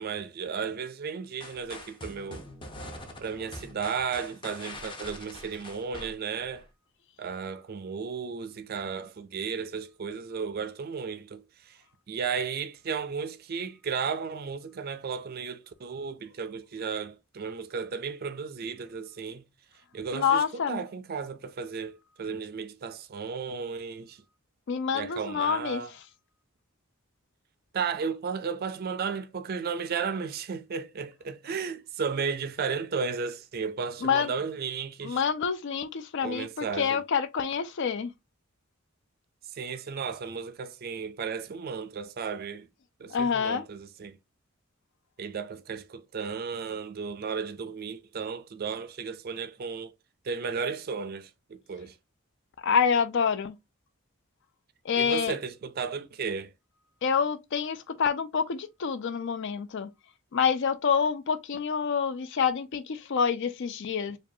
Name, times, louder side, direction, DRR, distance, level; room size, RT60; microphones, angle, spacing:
voice 1, 0.0-2.4 3.2-6.7 7.2-11.8 12.1-19.4 19.9-24.2 24.9-25.9 27.7-35.2 36.2-37.0 39.5-42.7 43.0-44.2 45.2-49.9 50.2-52.0 55.0-56.5, right 5 dB, 45° right, 0.4 m, -34 dB
sound 1, 1.4-6.7, left 1 dB, 25° left, 0.7 m, -43 dB
voice 2, 20.1-20.8 24.7-25.8 34.0-34.3 35.0-38.1 43.1-43.6 52.6-53.6 54.8-55.3 57.0-59.9 60.3-64.2, left 6 dB, 55° left, 0.4 m, -27 dB
4.7 x 2.3 x 2.7 m
head